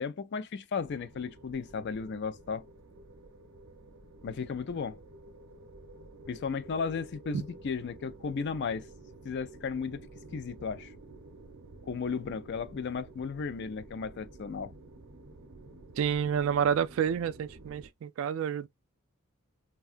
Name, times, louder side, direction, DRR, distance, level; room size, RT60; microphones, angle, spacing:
voice 1, 0.0-2.6 4.2-5.0 6.3-8.9 9.2-10.1 10.3-10.9 11.9-14.7, left 5 dB, 50° left, 0.4 m, -35 dB
sound 1, 0.8-17.9, right 2 dB, 90° right, 0.7 m, -51 dB
voice 2, 16.0-18.7, right 8 dB, 65° right, 0.3 m, -29 dB
3.6 x 2.2 x 2.4 m
head